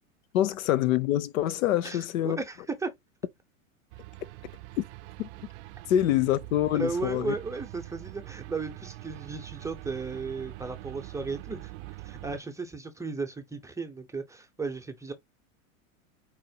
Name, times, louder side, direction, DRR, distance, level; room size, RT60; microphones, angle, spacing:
voice 1, 0.3-2.4 4.8-4.9 5.2-5.3 5.9-7.3, left 12 dB, 75° left, 0.7 m, -25 dB
voice 2, 1.8-2.9 6.7-11.7 12.0-15.1, right 4 dB, 5° right, 0.6 m, -35 dB
sound 1, 3.9-12.4, right 19 dB, 55° right, 0.5 m, -44 dB
4.3 x 4.1 x 2.3 m
hypercardioid pair, 120°, 42 cm